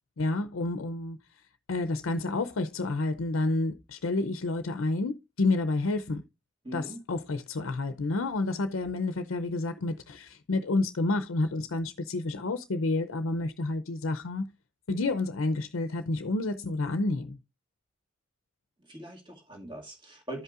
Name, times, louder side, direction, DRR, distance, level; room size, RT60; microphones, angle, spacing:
voice 1, 0.2-1.2 1.7-6.2 6.7-14.4 14.9-17.4, left 2 dB, 80° left, 0.6 m, -29 dB
voice 2, 6.6-7.0 18.8-20.4, right 1 dB, 25° right, 2.1 m, -41 dB
13.5 x 5.4 x 2.5 m
head